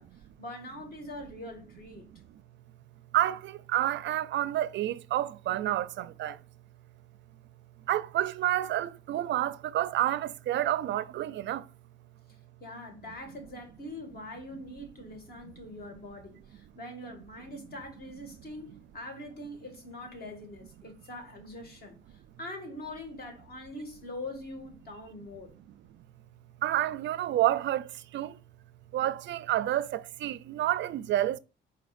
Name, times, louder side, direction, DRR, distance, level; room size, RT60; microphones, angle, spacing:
voice 1, 0.0-2.1 12.6-25.5, left 1 dB, 50° left, 1.9 m, -43 dB
voice 2, 3.1-6.4 7.9-11.7 26.6-28.4 28.9-31.4, right 13 dB, 65° right, 0.4 m, -29 dB
5.1 x 4.2 x 2.5 m
cardioid pair, 90°, 20 cm